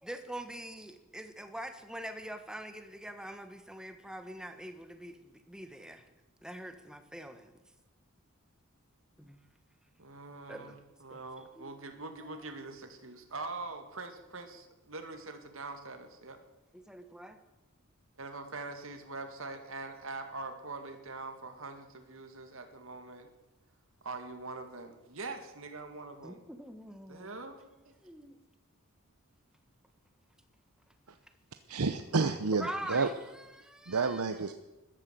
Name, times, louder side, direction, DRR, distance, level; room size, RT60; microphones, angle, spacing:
voice 1, 0.0-6.1 6.4-7.6 9.2-9.4 10.5-10.8 11.1-11.2 11.6-11.8 16.7-17.4 26.2-27.3 28.0-28.4 32.6-34.2, right 1 dB, 5° right, 7 dB, 1.3 m, -44 dB
voice 2, 10.0-16.4 18.2-23.3 24.0-26.4 27.1-27.9, right 3 dB, 65° right, 6 dB, 2.3 m, -43 dB
voice 3, 31.7-33.1 33.9-34.5, right 4 dB, 85° right, 9 dB, 0.9 m, -30 dB
14.5 x 12.5 x 7.7 m, 1.1 s
head